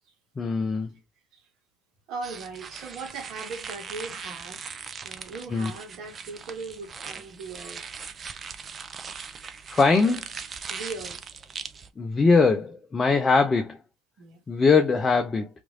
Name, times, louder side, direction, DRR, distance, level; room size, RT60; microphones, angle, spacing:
voice 1, 0.4-0.9 5.5-5.7 9.7-10.2 12.0-13.8 14.5-15.5, left 4 dB, 25° left, 0.6 m, -21 dB
voice 2, 2.1-4.6 5.0-7.8 10.7-11.2 13.1-13.2 14.2-14.4, right 4 dB, 55° right, 1.1 m, -39 dB
sound 1, 2.2-11.9, right 6 dB, 35° right, 0.5 m, -40 dB
3.0 x 2.6 x 2.6 m
hypercardioid pair, 80°, 0 cm